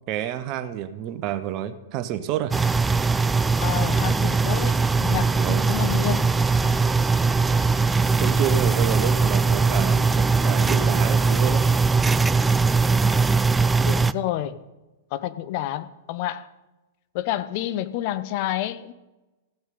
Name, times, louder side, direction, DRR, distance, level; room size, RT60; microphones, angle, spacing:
voice 1, 0.1-2.5 5.3-5.6 8.2-11.6, right 10 dB, 40° right, 0.9 m, -29 dB
sound 1, 2.5-14.1, right 4 dB, 10° right, 0.3 m, -20 dB
voice 2, 3.6-6.3 6.6-6.7 13.8-14.6 15.1-16.5 17.1-18.9, left 13 dB, 45° left, 0.7 m, -29 dB
15.5 x 6.2 x 5.4 m
figure-of-eight pair, 100°, 0 cm